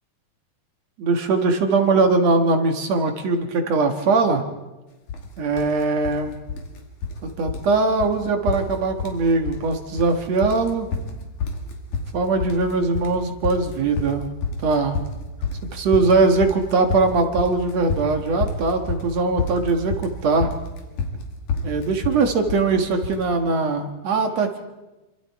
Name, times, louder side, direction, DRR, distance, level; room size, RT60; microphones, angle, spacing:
voice 1, 1.0-4.4 5.4-6.4 7.2-10.9 12.1-14.3 14.6-15.0 15.7-20.5 21.6-24.6, right 3 dB, 55° right, 5 dB, 2.5 m, -21 dB
sound 1, 5.1-5.3 5.6-6.2 6.5-7.2 7.5-7.7 8.0-8.2 8.5-9.2 9.5-10.1 10.4-23.2, left 4 dB, 60° left, 3.7 m, -28 dB
26.5 x 26.0 x 4.8 m, 1.1 s
omnidirectional pair, 4.0 m